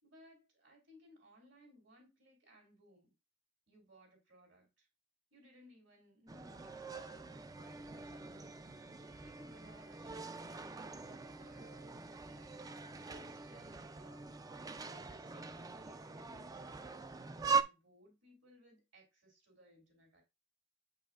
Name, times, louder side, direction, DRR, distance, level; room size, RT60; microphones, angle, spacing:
voice 1, 0.0-3.1 3.7-4.9 5.3-8.5 9.2-12.6 13.0-14.3 14.8-17.0 17.4-20.2, equal, 65° right, 2.9 m, -63 dB
sound 1, 6.3-17.6, right 5 dB, 20° right, 0.3 m, -42 dB
7.3 x 5.5 x 2.4 m
head